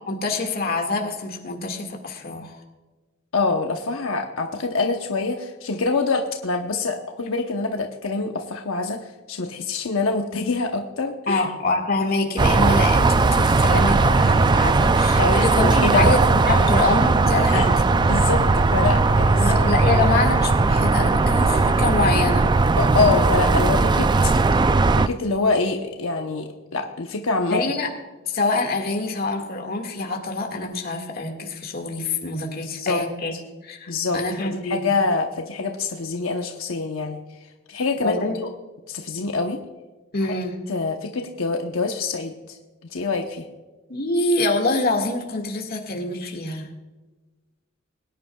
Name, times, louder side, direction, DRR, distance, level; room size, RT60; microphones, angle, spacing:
voice 1, 0.1-2.6 11.3-18.0 19.4-22.5 27.5-27.9 28.3-33.3 33.6-34.8 38.0-38.4 40.1-40.6 43.9-46.7, left 2 dB, 50° left, 2 dB, 1.9 m, -25 dB
voice 2, 3.3-11.4 15.2-16.2 16.5-16.7 17.4-19.4 19.9-20.2 22.8-24.3 24.9-27.6 32.6-33.0 33.9-34.2 34.4-37.2 37.7-38.3 38.9-39.6 40.7-42.6 42.9-43.5, left 3 dB, 85° left, 4 dB, 0.9 m, -25 dB
sound 1, 12.4-25.1, right 3 dB, 20° right, 0.3 m, -18 dB
22.0 x 10.0 x 2.3 m, 1.2 s
head